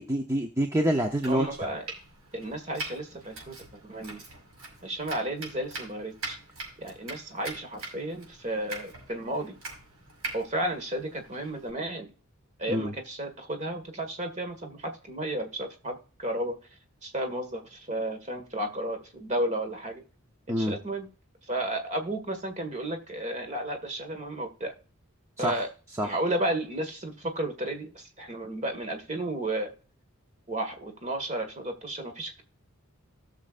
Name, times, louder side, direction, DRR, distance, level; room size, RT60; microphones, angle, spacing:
voice 1, 0.0-1.5 12.7-12.9 20.5-20.7 25.4-25.6 26.0-26.1, equal, 15° right, 3 dB, 0.8 m, -26 dB
Domestic sounds home sounds, 1.1-11.7, right 2 dB, 80° right, 5.5 m, -43 dB
voice 2, 1.3-1.8 2.3-3.6 3.8-4.2 4.8-6.4 6.8-9.5 10.3-12.1 12.6-16.6 17.0-20.0 20.6-21.1 21.5-24.7 25.4-25.7 26.0-29.7 30.5-32.4, right 1 dB, 30° right, 5 dB, 1.8 m, -33 dB
17.5 x 6.6 x 2.5 m, 0.36 s
head